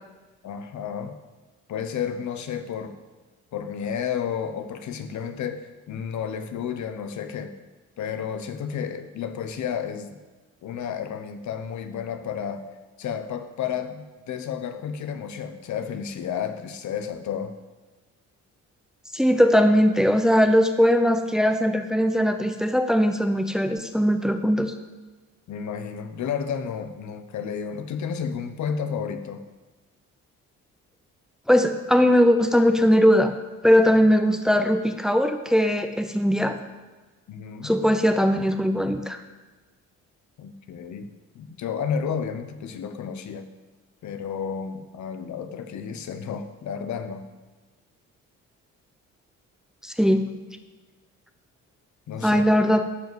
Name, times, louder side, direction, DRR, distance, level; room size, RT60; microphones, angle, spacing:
voice 1, 0.4-1.2 1.7-2.9 3.5-7.5 8.0-10.2 10.6-12.6 13.0-17.5 25.5-29.4 37.3-37.8 40.4-41.1 41.3-43.5 44.0-47.2 52.1-52.6, left 7 dB, 70° left, 9 dB, 1.1 m, -31 dB
voice 2, 19.1-24.7 31.5-33.3 33.6-36.6 37.6-39.2 49.8-50.3 52.2-52.8, equal, ahead, 8 dB, 0.9 m, -20 dB
12.0 x 5.4 x 7.9 m, 1.2 s
cardioid pair, 90°, 30 cm